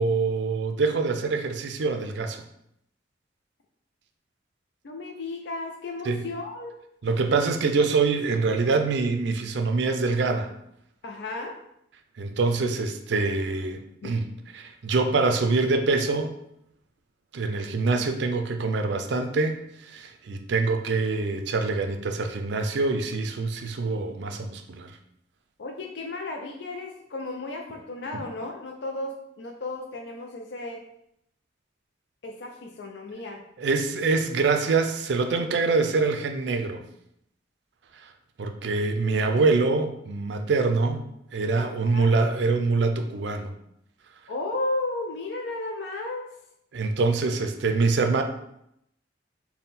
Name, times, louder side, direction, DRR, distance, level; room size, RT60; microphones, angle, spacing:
voice 1, 0.0-2.4 6.0-6.2 7.0-10.5 12.2-14.3 14.5-16.3 17.3-24.9 28.1-28.2 33.6-36.8 38.4-41.0 41.3-43.5 46.7-48.2, right 3 dB, 70° right, 6 dB, 0.4 m, -25 dB
voice 2, 4.8-6.7 11.0-11.5 14.0-14.1 25.6-30.8 32.2-33.4 41.6-42.1 44.3-46.3, left 2 dB, 70° left, 2 dB, 0.4 m, -34 dB
3.6 x 2.1 x 4.1 m, 0.77 s
head